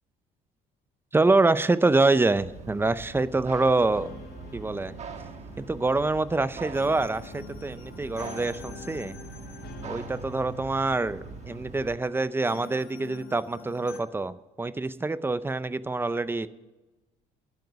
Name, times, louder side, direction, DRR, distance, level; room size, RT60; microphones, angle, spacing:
voice 1, 1.1-4.1 4.5-4.9 5.6-9.2 9.8-16.5, right 3 dB, 15° right, 16 dB, 0.5 m, -25 dB
sound 1, 2.3-12.0, right 5 dB, 40° right, 1.3 m, -43 dB
sound 2, 3.9-14.0, left 6 dB, 65° left, 1.8 m, -47 dB
11.5 x 8.0 x 8.4 m, 1.1 s
cardioid pair, 110°, 17 cm